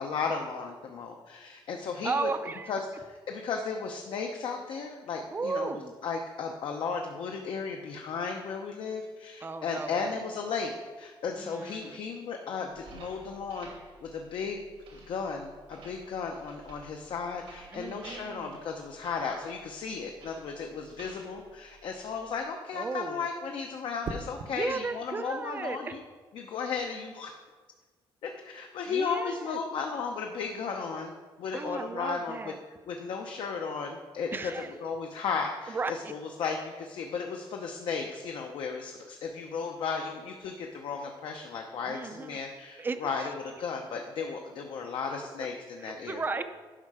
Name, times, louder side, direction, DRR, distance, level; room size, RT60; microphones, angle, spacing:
voice 1, 0.0-2.3 2.7-2.8 3.1-5.7 6.0-10.7 11.0-13.7 14.0-14.6 14.9-26.0 26.3-27.3 28.2-31.1 31.4-32.5 32.9-34.4 34.8-46.2, left 5 dB, 65° left, 2 dB, 0.8 m, -35 dB
voice 2, 2.0-2.7 5.3-5.9 9.4-10.2 11.3-12.0 17.7-18.7 22.7-23.3 24.5-25.9 28.9-29.6 31.5-32.6 34.3-34.7 35.7-36.1 41.8-42.4 42.8-43.3 45.8-46.4, right 4 dB, 20° right, 10 dB, 0.5 m, -35 dB
sound 1, 12.7-22.4, right 3 dB, 90° right, 2.5 m, -53 dB
sound 2, 21.5-21.6 24.0-24.6 26.5-26.8, right 3 dB, 55° right, 0.8 m, -39 dB
11.0 x 5.6 x 4.9 m, 1.4 s
cardioid pair, 170°, 9 cm